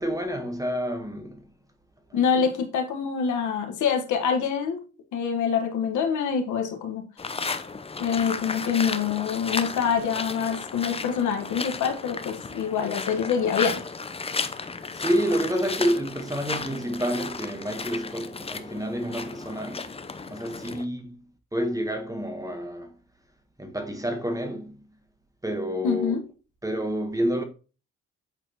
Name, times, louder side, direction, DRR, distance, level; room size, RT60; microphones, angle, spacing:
voice 1, 0.0-1.5 14.9-19.9 20.3-21.2 21.5-22.9 23.6-24.8 25.4-26.2 26.6-27.4, equal, 10° right, 1.1 m, -29 dB
voice 2, 2.1-4.8 5.1-7.1 8.0-13.8 25.8-26.2, left 7 dB, 75° left, 1.3 m, -25 dB
sound 1, 7.2-20.8, left 4 dB, 20° left, 0.6 m, -34 dB
8.0 x 4.2 x 2.9 m
cardioid pair, 90°, 30 cm